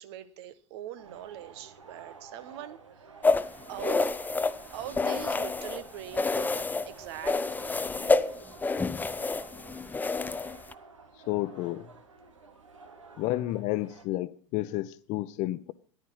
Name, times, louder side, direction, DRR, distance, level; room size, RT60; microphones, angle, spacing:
voice 1, 0.0-3.1 3.7-4.0 4.7-8.5, right 12 dB, 60° right, 1.2 m, -42 dB
sound 1, 1.0-14.0, right 4 dB, 80° right, 1.6 m, -50 dB
Combing wet hair hair brush, 3.2-5.8 6.1-6.9 7.2-10.7, left 3 dB, 10° left, 0.6 m, -28 dB
voice 2, 11.3-11.9 13.2-15.7, left 16 dB, 50° left, 0.9 m, -31 dB
14.0 x 11.0 x 5.6 m
figure-of-eight pair, 80°, 16 cm